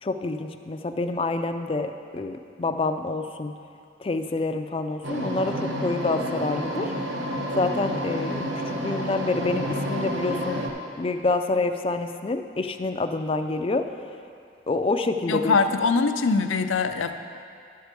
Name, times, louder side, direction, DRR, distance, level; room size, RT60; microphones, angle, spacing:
voice 1, 0.0-3.5 4.0-6.9 7.5-8.5 8.8-10.6 11.0-13.9 14.7-15.6, left 3 dB, 30° left, 7 dB, 0.4 m, -27 dB
sound 1, 5.0-10.7, equal, 75° right, 1.0 m, -30 dB
voice 2, 15.3-17.2, left 4 dB, 85° left, 8 dB, 0.5 m, -23 dB
11.0 x 4.7 x 6.7 m, 2.4 s
head